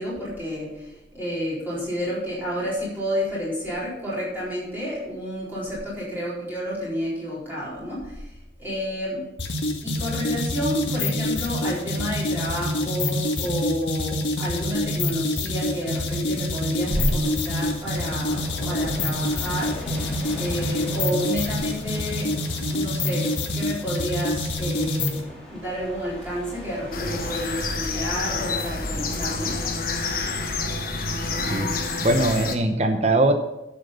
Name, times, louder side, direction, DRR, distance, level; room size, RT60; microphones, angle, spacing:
voice 1, 0.0-9.2 9.8-22.3 22.6-23.3 23.5-25.2 25.5-29.6, equal, 10° right, -8 dB, 4.3 m, -30 dB
sound 1, 9.4-25.2, left 1 dB, 85° left, 1.6 m, -26 dB
sound 2, 16.8-27.4, equal, 5° left, 2.9 m, -40 dB
sound 3, 26.9-32.6, left 3 dB, 50° left, 1.3 m, -28 dB
voice 2, 31.5-33.3, right 1 dB, 35° right, 5 dB, 0.8 m, -21 dB
12.5 x 6.8 x 5.4 m, 0.91 s
head